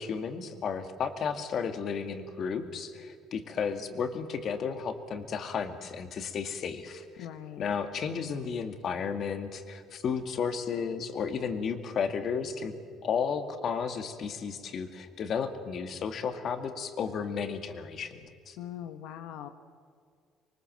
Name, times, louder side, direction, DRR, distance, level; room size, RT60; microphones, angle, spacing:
voice 1, 0.0-7.3 7.6-12.7 13.0-18.6, left 6 dB, 50° left, 7 dB, 2.2 m, -33 dB
voice 2, 7.2-7.7 18.6-19.5, left 10 dB, 85° left, 8 dB, 1.3 m, -41 dB
25.5 x 24.0 x 7.6 m, 2.2 s
cardioid pair, 135°, 0 cm